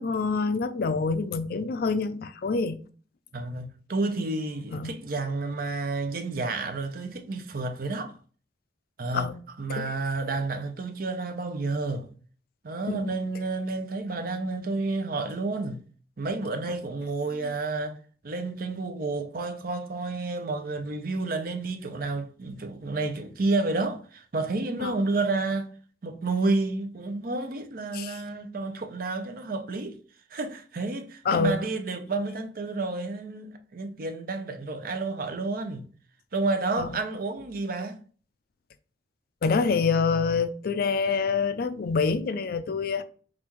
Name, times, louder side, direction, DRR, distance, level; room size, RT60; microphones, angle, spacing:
voice 1, 0.0-2.8 4.7-4.9 9.1-9.4 9.8-9.9 12.9-13.1 24.8-24.9 27.9-28.2 31.3-31.6 36.8-36.9 39.4-43.0, left 4 dB, 55° left, 0.4 m, -26 dB
voice 2, 3.3-8.2 9.0-9.3 9.6-12.1 12.6-15.8 16.2-18.0 18.2-25.7 26.0-30.0 30.3-35.8 36.3-38.0, right 3 dB, 50° right, 0.6 m, -30 dB
5.5 x 2.5 x 3.0 m
head